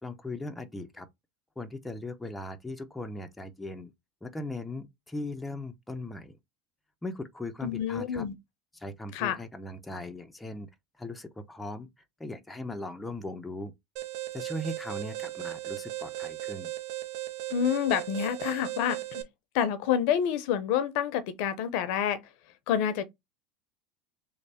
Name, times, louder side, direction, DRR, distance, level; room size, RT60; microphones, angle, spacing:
voice 1, 0.0-1.1 1.6-3.9 4.2-6.4 7.0-8.3 8.7-10.7 11.0-13.7 14.3-16.7, left 1 dB, 10° left, 0.6 m, -39 dB
voice 2, 7.6-8.3 9.1-9.4 17.5-19.2 19.5-22.2 22.7-23.0, left 9 dB, 65° left, 0.6 m, -28 dB
Alarm, 14.0-19.2, right 15 dB, 60° right, 0.7 m, -37 dB
3.2 x 2.1 x 4.2 m
supercardioid pair, 110°, 0 cm